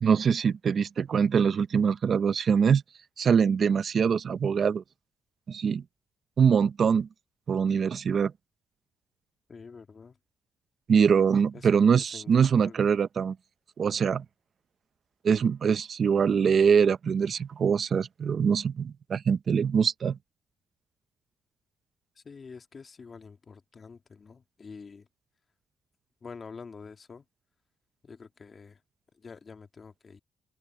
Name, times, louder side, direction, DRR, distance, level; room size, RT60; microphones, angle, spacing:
voice 1, 0.0-2.8 3.2-4.8 5.5-5.8 6.4-7.1 7.5-8.3 10.9-13.4 13.8-14.2 15.2-20.2, right 6 dB, 50° right, 0.6 m, -23 dB
voice 2, 9.5-10.2 11.5-12.8 22.2-25.1 26.2-27.3 28.0-28.8 29.1-30.2, left 5 dB, 40° left, 1.9 m, -47 dB
open air
cardioid pair, 90°, 0 cm